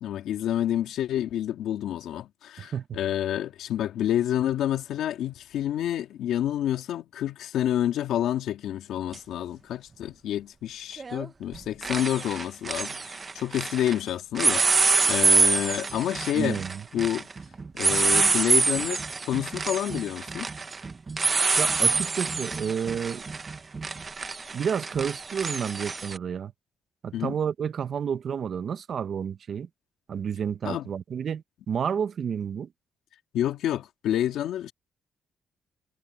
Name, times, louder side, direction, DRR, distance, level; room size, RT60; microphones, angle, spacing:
voice 1, 0.0-16.6 16.9-17.3 17.7-20.5 27.1-27.4 30.6-30.9 33.3-34.7, left 11 dB, 80° left, 2.5 m, -28 dB
voice 2, 2.6-3.0 16.3-16.8 21.6-23.3 24.5-26.5 27.0-29.7 30.1-32.7, right 7 dB, 55° right, 1.2 m, -30 dB
sound 1, 9.1-9.2 11.0-11.3 11.5-14.0 14.3-26.2, right 4 dB, 30° right, 1.2 m, -26 dB
cardioid pair, 90°, 0 cm